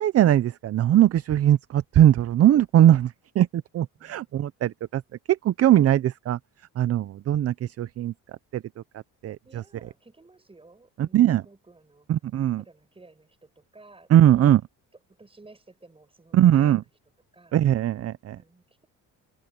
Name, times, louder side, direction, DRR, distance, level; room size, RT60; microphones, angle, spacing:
voice 1, 0.0-3.5 3.7-5.0 5.3-6.4 6.8-8.1 8.5-8.6 9.2-9.4 11.0-11.4 12.1-12.6 14.1-14.6 16.3-16.8 17.5-18.4, right 11 dB, 45° right, 0.5 m, -20 dB
voice 2, 4.0-4.4 9.4-12.1 12.5-14.5 15.1-16.9 17.3-17.6 18.3-18.9, right 3 dB, 15° right, 7.9 m, -54 dB
cardioid pair, 130°, 36 cm